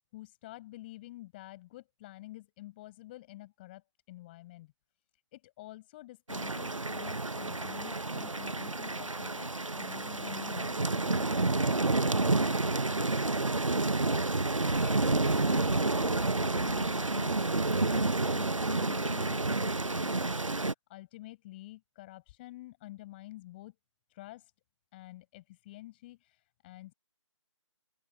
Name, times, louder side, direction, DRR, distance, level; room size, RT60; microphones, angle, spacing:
voice 1, 0.1-4.7 5.3-9.5 9.8-12.6 14.7-23.7 24.1-24.5 24.9-26.9, left 17 dB, 20° left, 7.0 m, -49 dB
sound 1, 6.3-20.7, right 2 dB, 80° right, 1.1 m, -29 dB
open air
figure-of-eight pair, 150°, 16 cm